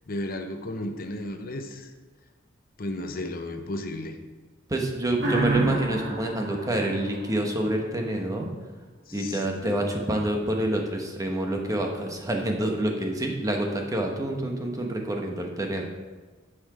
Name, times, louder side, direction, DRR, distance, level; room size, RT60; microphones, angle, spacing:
voice 1, 0.1-1.9 2.8-4.2 9.1-9.9, left 1 dB, 45° left, 5 dB, 0.8 m, -34 dB
voice 2, 4.7-8.5 9.1-15.8, right 1 dB, 20° right, 2 dB, 1.1 m, -27 dB
sound 1, 5.2-7.8, right 2 dB, 60° right, 3.1 m, -29 dB
9.7 x 6.0 x 4.8 m, 1.3 s
head